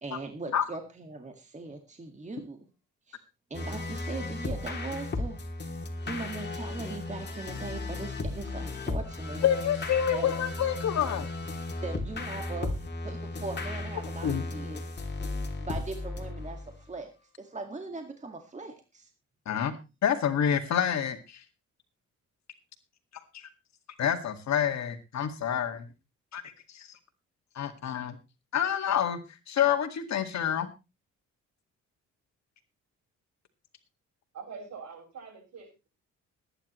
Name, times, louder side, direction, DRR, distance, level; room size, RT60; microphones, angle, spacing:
voice 1, 0.0-2.7 3.1-3.2 3.5-5.4 6.1-9.4 10.1-10.3 11.8-14.8 15.6-19.1, right 3 dB, 25° right, 5 dB, 2.0 m, -40 dB
sound 1, 3.5-16.8, left 2 dB, 35° left, 2.9 m, -35 dB
voice 2, 9.4-11.3 14.2-14.4 19.5-19.7 20.0-21.4 23.1-23.5 24.0-25.9 26.3-26.4 26.7-27.0 27.6-28.2 28.5-29.2 29.5-30.7, left 9 dB, 65° left, 7 dB, 2.1 m, -28 dB
voice 3, 34.3-35.9, right 5 dB, 65° right, 3 dB, 6.9 m, -44 dB
20.5 x 10.0 x 3.1 m, 0.27 s
cardioid pair, 90°, 30 cm